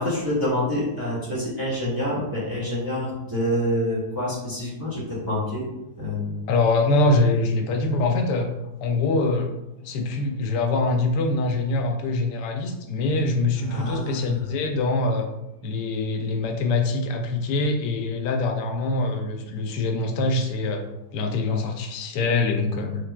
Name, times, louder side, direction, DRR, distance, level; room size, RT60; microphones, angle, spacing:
voice 1, 0.0-5.6 6.0-6.4 13.5-14.4, left 1 dB, 15° right, -8 dB, 1.6 m, -27 dB
voice 2, 6.5-8.5 8.8-9.5 9.8-15.3 15.6-20.8 21.1-23.1, left 2 dB, 85° left, 4 dB, 1.2 m, -24 dB
6.5 x 3.3 x 2.2 m, 0.92 s
omnidirectional pair, 1.8 m